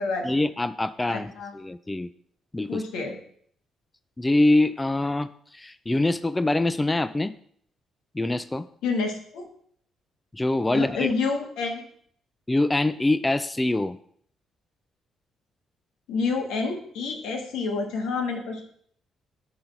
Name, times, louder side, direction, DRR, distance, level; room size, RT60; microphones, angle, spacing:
voice 1, 0.2-2.1 2.5-2.8 4.2-7.4 8.1-8.7 10.3-11.1 12.5-14.0, left 2 dB, 15° left, 12 dB, 0.4 m, -24 dB
voice 2, 1.1-1.5 2.7-3.2 8.8-9.5 10.7-11.8 16.1-18.6, left 4 dB, 90° left, 3 dB, 1.7 m, -28 dB
11.5 x 3.9 x 5.9 m, 0.63 s
cardioid pair, 90°, 0 cm